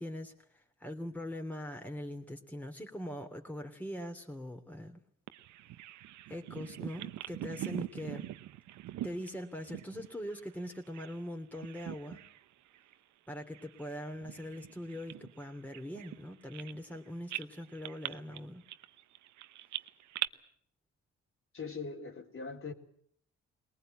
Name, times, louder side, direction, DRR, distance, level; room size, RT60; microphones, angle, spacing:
voice 1, 0.0-5.0 6.3-8.3 9.0-12.3 13.3-18.6, equal, 5° left, 3.1 m, -42 dB
Bird vocalization bird call bird song, 5.3-11.2 11.5-12.4 12.7-12.9 13.5-17.0 17.3-20.3, right 14 dB, 80° right, 0.9 m, -43 dB
voice 2, 21.5-22.7, left 4 dB, 45° left, 3.9 m, -41 dB
21.5 x 19.5 x 9.0 m
supercardioid pair, 60°, 29 cm